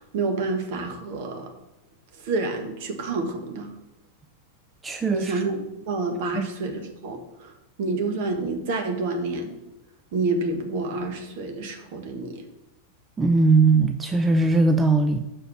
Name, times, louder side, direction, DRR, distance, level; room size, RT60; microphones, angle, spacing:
voice 1, 0.0-1.5 2.2-3.7 5.1-5.6 5.9-7.5 7.8-9.6 10.1-12.4, right 3 dB, 50° right, 4 dB, 1.4 m, -28 dB
voice 2, 4.8-5.3 6.3-6.5 13.2-15.2, right 3 dB, 15° right, 6 dB, 0.5 m, -20 dB
6.0 x 4.7 x 6.3 m, 0.92 s
figure-of-eight pair, 90°, 0 cm